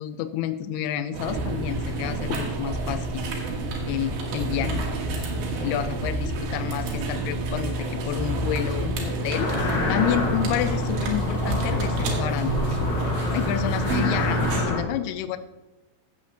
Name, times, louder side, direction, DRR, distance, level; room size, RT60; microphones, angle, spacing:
voice 1, 0.0-3.3 3.9-4.9 5.6-12.8 13.3-15.4, left 10 dB, 90° left, 12 dB, 2.2 m, -29 dB
sound 1, 1.1-14.6, right 2 dB, 80° right, 3.7 m, -28 dB
sound 2, 9.3-14.8, left 2 dB, 70° left, 3.8 m, -28 dB
14.5 x 7.8 x 2.9 m, 1.1 s
omnidirectional pair, 5.1 m